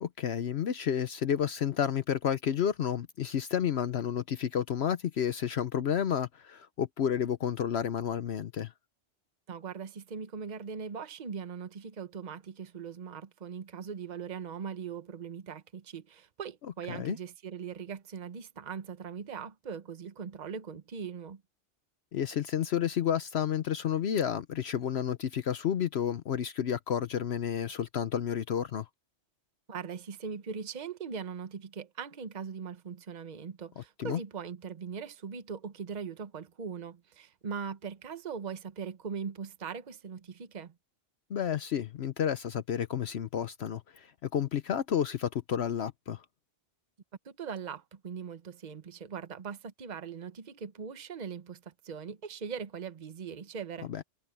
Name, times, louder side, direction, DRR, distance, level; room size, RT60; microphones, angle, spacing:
voice 1, 0.0-8.7 16.9-17.2 22.1-28.9 33.8-34.2 41.3-46.2 53.9-54.0, left 9 dB, 65° left, 0.9 m, -31 dB
voice 2, 9.5-21.4 29.7-40.7 47.2-53.9, right 6 dB, 40° right, 1.0 m, -40 dB
omnidirectional pair, 1.2 m